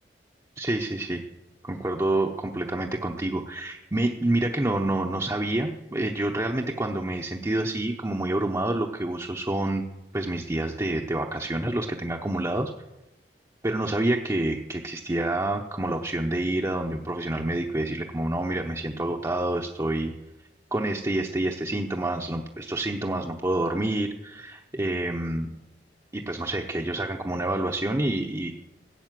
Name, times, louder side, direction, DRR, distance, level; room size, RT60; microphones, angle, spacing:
voice 1, 0.6-1.2 1.6-9.8 10.1-12.7 13.6-20.1 20.7-25.5 26.1-28.6, right 1 dB, 20° right, 1 dB, 0.8 m, -28 dB
15.5 x 8.5 x 7.5 m, 0.98 s
head